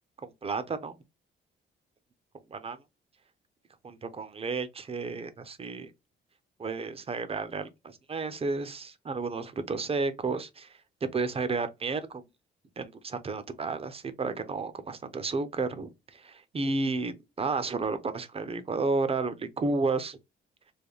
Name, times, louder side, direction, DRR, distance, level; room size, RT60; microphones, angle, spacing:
voice 1, 0.2-1.0 2.5-2.8 3.8-5.9 6.6-10.7 11.1-12.2 12.8-20.2, right 3 dB, 30° right, 0.7 m, -32 dB
3.5 x 2.1 x 3.8 m
cardioid pair, 90°, 20 cm